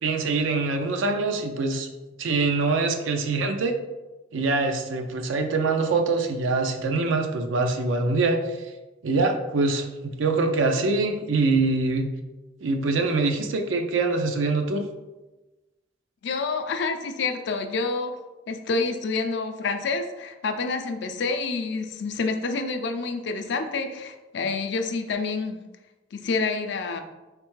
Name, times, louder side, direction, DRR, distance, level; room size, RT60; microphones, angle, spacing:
voice 1, 0.0-1.9 2.2-3.8 4.3-8.6 9.0-12.1 12.6-14.8, right 3 dB, 85° right, 4 dB, 0.5 m, -24 dB
voice 2, 16.2-18.1 18.5-25.6 26.1-27.0, left 4 dB, 65° left, 6 dB, 0.4 m, -28 dB
4.2 x 3.3 x 3.1 m, 1.1 s
head